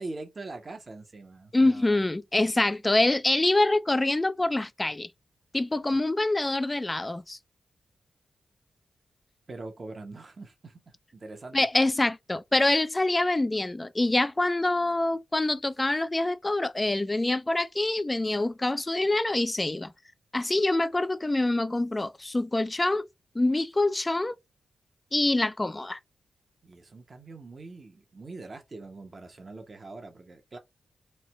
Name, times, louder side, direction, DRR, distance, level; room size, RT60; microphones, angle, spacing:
voice 1, 0.0-2.0 5.9-6.0 9.5-11.7 26.6-30.6, right 3 dB, 50° right, 0.8 m, -43 dB
voice 2, 1.5-5.1 5.5-7.4 11.5-19.9 20.3-23.1 23.4-24.3 25.1-26.0, left 2 dB, 25° left, 0.4 m, -25 dB
3.2 x 2.1 x 3.1 m
supercardioid pair, 40°, 0 cm